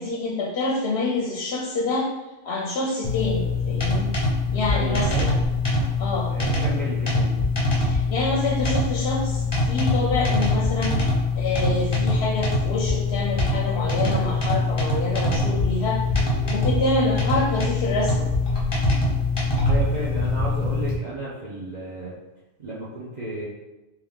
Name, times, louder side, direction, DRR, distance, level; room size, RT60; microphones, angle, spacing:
voice 1, 0.0-2.1 2.4-4.1 4.5-5.3 6.0-6.3 7.8-11.0 11.3-16.0 16.5-18.3, left 2 dB, 60° left, -2 dB, 0.8 m, -27 dB
sound 1, 3.0-20.9, left 2 dB, 25° left, 0.8 m, -23 dB
voice 2, 4.7-5.2 6.3-7.3 19.6-22.1 22.6-23.4, right 2 dB, 40° right, -8 dB, 0.8 m, -33 dB
3.6 x 3.0 x 3.6 m, 1.1 s
omnidirectional pair, 1.3 m